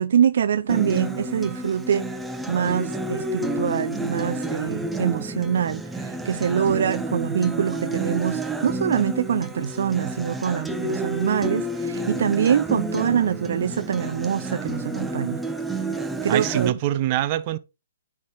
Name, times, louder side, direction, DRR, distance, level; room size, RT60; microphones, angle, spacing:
voice 1, 0.0-2.1 2.5-15.4 16.2-16.8, right 8 dB, 60° right, 0.4 m, -24 dB
Acoustic guitar, 0.7-16.7, right 2 dB, 5° right, 0.7 m, -30 dB
voice 2, 16.3-17.6, right 13 dB, 35° right, 0.8 m, -24 dB
9.9 x 3.7 x 4.7 m
hypercardioid pair, 140°, 0 cm